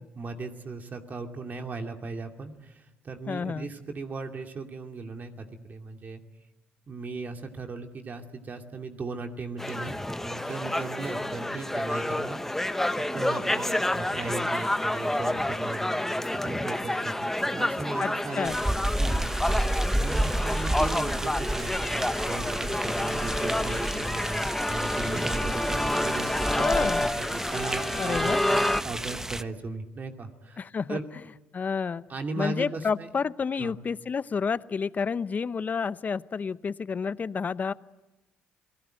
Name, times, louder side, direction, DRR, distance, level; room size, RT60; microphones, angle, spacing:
voice 1, 0.0-6.2 6.9-9.9 10.2-18.7 19.0-31.1 32.1-33.1 33.6-33.7, right 3 dB, 40° right, 4 dB, 2.5 m, -37 dB
voice 2, 3.3-3.7 18.0-18.6 26.6-27.0 28.0-28.4 30.6-31.0 31.5-32.0 32.4-37.7, left 5 dB, 40° left, 16 dB, 0.8 m, -30 dB
sound 1, 9.6-28.8, left 1 dB, 5° left, 1.2 m, -29 dB
sound 2, 18.4-29.4, right 1 dB, 10° right, 1.1 m, -31 dB
28.5 x 19.0 x 9.1 m, 1.1 s
supercardioid pair, 65°, 4 cm